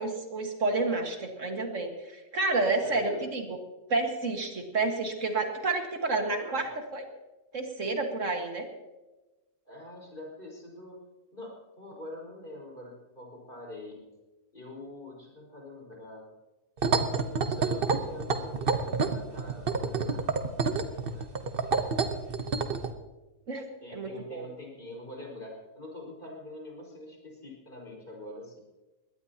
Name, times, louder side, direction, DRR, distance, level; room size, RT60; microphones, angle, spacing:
voice 1, 0.0-3.6 3.9-7.1 7.5-8.7 23.5-23.6 23.9-24.5, right 3 dB, 65° right, 3 dB, 2.1 m, -30 dB
voice 2, 2.8-3.2 6.4-6.6 9.7-11.0 11.3-14.1 14.5-16.3 17.3-20.2 20.7-21.3 23.8-28.6, left 1 dB, 40° left, -2 dB, 5.3 m, -44 dB
sound 1, 16.8-22.9, right 5 dB, 45° right, 1.1 m, -28 dB
21.5 x 18.0 x 2.9 m, 1.1 s
omnidirectional pair, 1.4 m